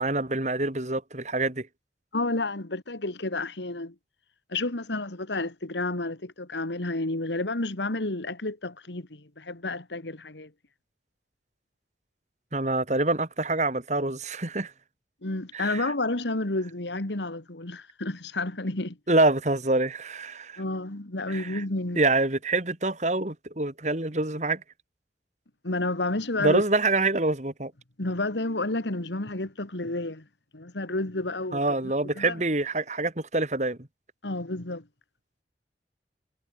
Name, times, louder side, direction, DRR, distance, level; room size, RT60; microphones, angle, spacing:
voice 1, 0.0-1.7 12.5-14.7 15.5-15.9 19.1-20.6 21.3-21.6 22.0-24.6 26.4-27.7 31.5-33.8, right 2 dB, 40° right, 2.4 m, -26 dB
voice 2, 2.1-4.0 4.5-10.5 15.2-19.0 20.6-22.0 25.6-26.6 28.0-30.3 30.5-31.6 32.2-32.3 34.2-34.9, left 2 dB, 85° left, 2.2 m, -30 dB
head